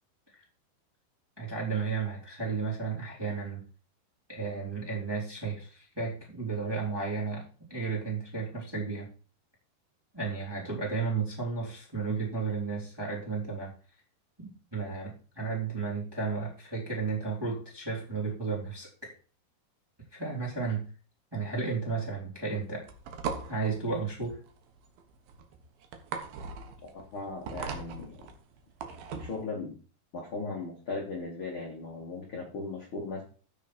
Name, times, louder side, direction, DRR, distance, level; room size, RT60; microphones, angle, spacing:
voice 1, 1.4-3.6 4.3-7.4 7.7-9.1 10.1-13.7 14.4-19.1 20.1-20.8 21.3-22.9 23.5-24.4, right 4 dB, 5° right, -4 dB, 2.5 m, -33 dB
sound 1, 22.6-29.4, right 5 dB, 65° right, 2.7 m, -39 dB
voice 2, 26.9-28.2 29.1-29.7 30.1-33.2, left 3 dB, 45° left, -1 dB, 1.7 m, -37 dB
14.5 x 6.3 x 4.4 m, 0.39 s
omnidirectional pair, 5.5 m